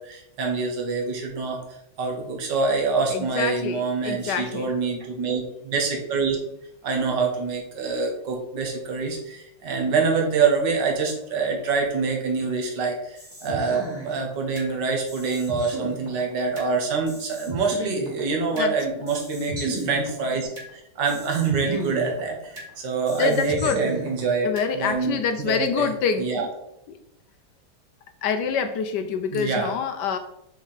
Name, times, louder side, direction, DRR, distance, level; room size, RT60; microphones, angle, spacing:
voice 1, 0.0-1.6 2.0-6.4 6.8-20.5 21.0-24.5 24.7-25.9 26.2-26.5 29.3-29.7, right 4 dB, 55° right, 0 dB, 2.0 m, -25 dB
voice 2, 3.1-4.7 18.5-18.7 23.2-23.8 24.4-26.5 26.9-27.0 28.2-30.2, left 6 dB, 70° left, 8 dB, 1.0 m, -26 dB
sound 1, 13.2-14.7 15.1-16.7 17.1-18.7 19.1-20.7 21.1-22.7 23.1-24.7, right 1 dB, 25° right, 3.4 m, -34 dB
5.7 x 4.5 x 5.7 m, 0.79 s
omnidirectional pair, 2.3 m